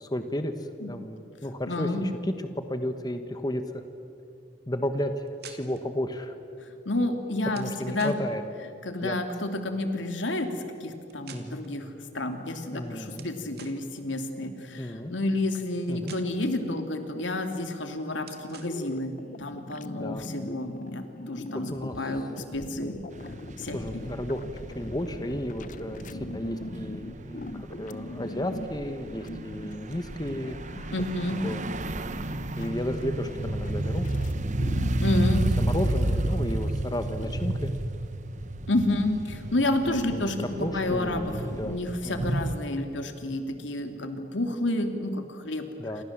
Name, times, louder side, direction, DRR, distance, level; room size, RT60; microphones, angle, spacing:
voice 1, 0.0-3.8 4.7-6.3 7.5-8.4 9.0-9.2 11.3-11.6 12.7-13.3 14.8-15.1 15.9-16.1 20.0-20.4 21.5-22.2 23.7-24.4 24.7-30.6 31.4-31.6 32.6-34.1 35.4-37.7 39.8-40.3 40.6-41.8 42.0-42.3 45.8-46.0, left 1 dB, 20° left, 8 dB, 1.3 m, -33 dB
voice 2, 1.7-2.0 6.8-8.1 8.8-19.1 19.4-22.2 22.5-23.0 23.6-24.1 30.9-31.4 35.0-35.4 38.7-40.5 40.7-45.7, left 1 dB, 85° left, 6 dB, 2.8 m, -30 dB
sound 1, 5.3-5.9 7.5-8.2 11.0-11.8 13.1-13.8 15.8-16.5 18.3-18.8, right 7 dB, 60° right, 2.7 m, -48 dB
sound 2, 18.6-37.4, left 1 dB, 45° left, 0.9 m, -41 dB
sound 3, 23.1-42.6, right 1 dB, 40° right, 1.0 m, -32 dB
29.0 x 27.0 x 7.5 m, 2.6 s
head